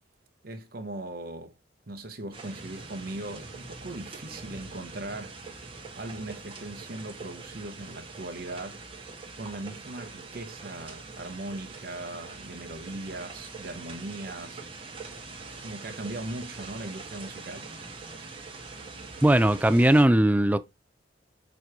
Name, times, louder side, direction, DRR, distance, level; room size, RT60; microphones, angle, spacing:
voice 1, 0.4-1.5 1.9-5.4 5.9-8.8 9.4-14.6 15.5-17.7, right 2 dB, 55° right, 0.9 m, -39 dB
sound 1, 2.3-20.1, right 3 dB, 30° right, 1.5 m, -43 dB
voice 2, 19.2-20.6, right 1 dB, 10° right, 0.4 m, -19 dB
7.0 x 3.0 x 4.6 m
head